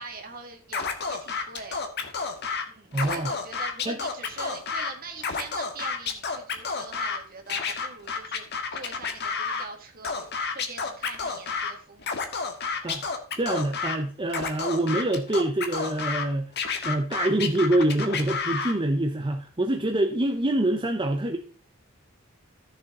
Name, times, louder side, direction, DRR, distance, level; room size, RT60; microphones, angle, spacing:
voice 1, 0.0-1.8 2.7-12.3, right 4 dB, 45° right, 2.1 m, -43 dB
Scratching (performance technique), 0.7-2.6 2.9-4.9 5.2-7.2 7.5-9.6 10.0-11.7 12.0-14.0 14.3-16.2 16.6-18.7, left 5 dB, 55° left, 1.5 m, -30 dB
voice 2, 2.9-3.3 3.8-4.0 12.8-13.1 13.4-16.5 16.8-21.4, right 1 dB, 25° right, 0.8 m, -25 dB
14.0 x 6.9 x 3.8 m
head